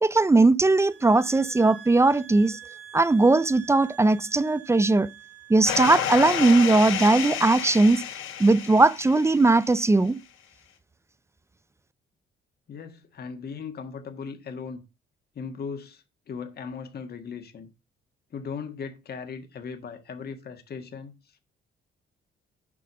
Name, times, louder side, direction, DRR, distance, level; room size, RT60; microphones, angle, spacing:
voice 1, 0.0-2.6 2.9-5.1 5.5-8.0 8.4-10.2, right 2 dB, 15° right, 0.5 m, -19 dB
sound 1, 0.9-6.7, right 10 dB, 80° right, 3.6 m, -47 dB
sound 2, 5.7-9.7, left 9 dB, 85° left, 1.2 m, -30 dB
voice 2, 12.7-14.8 15.3-17.7 18.3-21.1, left 5 dB, 50° left, 1.6 m, -38 dB
7.7 x 5.7 x 5.5 m
cardioid pair, 90°, 20 cm